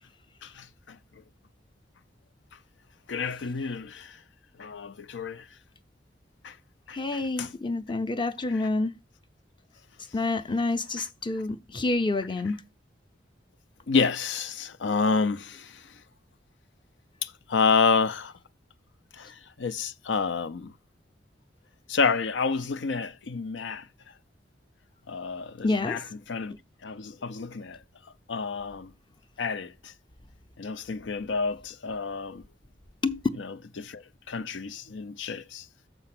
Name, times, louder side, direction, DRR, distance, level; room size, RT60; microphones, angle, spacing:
voice 1, 0.4-1.0 3.1-4.2 4.6-5.5 6.4-6.6 6.9-7.5 8.5-8.6 13.9-15.9 17.2-18.3 19.1-20.7 21.9-23.9 25.1-26.5 26.8-27.8 28.3-28.9 29.4-29.9 30.6-32.4 33.4-35.7, left 5 dB, 70° left, 0.5 m, -29 dB
voice 2, 6.9-9.0 10.1-12.6 25.6-26.0 33.0-33.2, left 2 dB, 25° left, 0.7 m, -28 dB
6.8 x 5.4 x 5.8 m
head